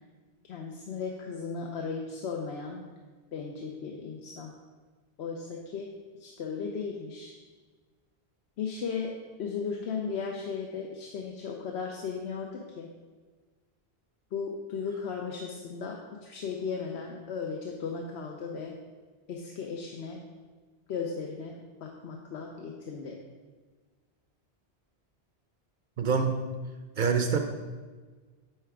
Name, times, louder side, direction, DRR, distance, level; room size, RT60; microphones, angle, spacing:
voice 1, 0.5-2.8 3.3-4.5 5.2-5.9 6.2-7.3 8.6-9.1 9.4-12.9 14.3-18.7 19.3-20.2 20.9-23.1, left 5 dB, 90° left, 1 dB, 0.9 m, -36 dB
voice 2, 26.0-26.4 27.0-27.4, right 6 dB, 55° right, 6 dB, 0.6 m, -25 dB
9.0 x 3.4 x 4.8 m, 1.4 s
omnidirectional pair, 1.1 m